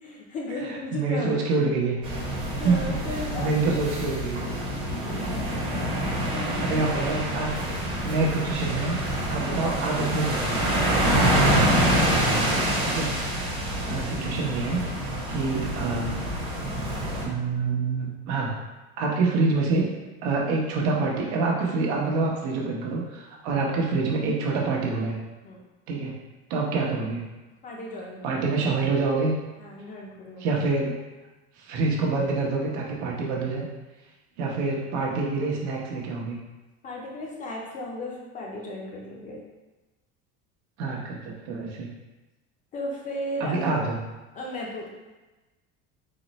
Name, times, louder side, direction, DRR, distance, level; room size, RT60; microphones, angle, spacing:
voice 1, 0.0-1.8 2.6-3.8 6.3-6.8 13.6-13.8 25.4-25.6 27.6-28.4 29.6-30.5 36.8-39.4 42.7-43.8 44.3-44.9, left 1 dB, 25° left, -2 dB, 0.5 m, -35 dB
voice 2, 0.6-2.0 2.6-2.8 3.0-4.5 6.6-7.5 8.0-9.0 9.3-10.7 12.8-13.2 13.8-14.8 15.3-16.2 17.2-18.5 19.0-19.9 20.2-25.2 25.9-26.2 26.5-27.2 28.2-29.3 30.4-30.9 31.6-33.6 34.4-36.4 40.8-41.9 43.4-44.0, right 3 dB, 85° right, -2 dB, 1.0 m, -26 dB
sound 1, 2.0-17.3, right 1 dB, 15° right, 0.7 m, -26 dB
4.0 x 2.1 x 4.0 m, 1.1 s
cardioid pair, 165°, 33 cm